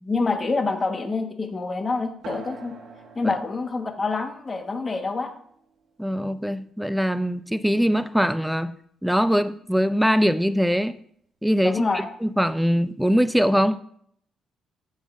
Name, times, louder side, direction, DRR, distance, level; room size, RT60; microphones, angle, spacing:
voice 1, 0.0-2.7 3.1-5.3 11.6-12.1, left 3 dB, 30° left, 4 dB, 1.3 m, -26 dB
sound 1, 2.2-7.3, right 4 dB, 80° right, 1.6 m, -46 dB
voice 2, 6.0-8.8 9.0-11.0 11.4-13.8, equal, ahead, 12 dB, 0.4 m, -22 dB
10.0 x 6.9 x 2.5 m, 0.64 s
cardioid pair, 90°, 0 cm